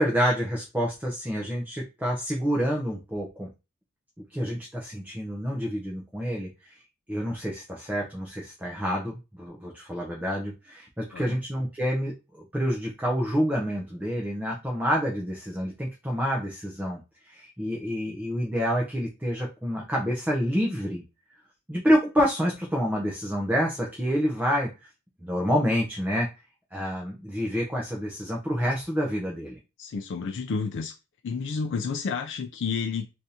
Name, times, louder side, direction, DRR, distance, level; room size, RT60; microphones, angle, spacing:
voice 1, 0.0-3.5 4.3-6.8 7.1-21.0 21.7-24.7 25.2-26.3 26.7-29.6, equal, 10° right, 0.6 m, -28 dB
voice 2, 29.8-30.9 31.2-33.1, left 5 dB, 55° left, 0.4 m, -30 dB
3.4 x 2.5 x 2.8 m
head